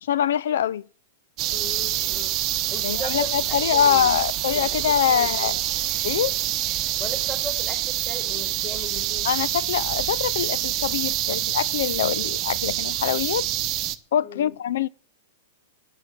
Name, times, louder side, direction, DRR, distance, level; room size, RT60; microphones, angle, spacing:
voice 1, 0.0-0.8 2.8-5.5 6.0-6.3 9.2-13.5 14.1-14.9, left 9 dB, 70° left, 0.5 m, -24 dB
sound 1, 1.4-14.0, right 14 dB, 35° right, 1.0 m, -26 dB
voice 2, 1.5-2.4 2.7-4.2 4.5-5.6 7.0-9.3 14.2-14.5, left 1 dB, 15° left, 4.5 m, -37 dB
10.5 x 7.8 x 8.5 m
hypercardioid pair, 115°, 0 cm